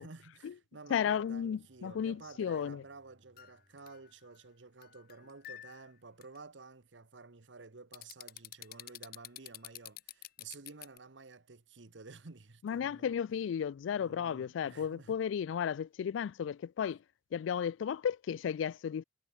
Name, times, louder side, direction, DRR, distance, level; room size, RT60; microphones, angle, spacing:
voice 1, 0.0-13.1 13.9-15.2, right 4 dB, 75° right, 1.2 m, -52 dB
Bowed string instrument, 0.7-5.3, equal, 35° right, 7.2 m, -72 dB
voice 2, 0.9-2.8 12.6-17.0 17.3-19.0, left 8 dB, 80° left, 0.3 m, -34 dB
sound 1, 3.4-4.4 4.8-5.9 6.2-6.4 7.9-11.0, left 13 dB, 50° left, 0.7 m, -48 dB
head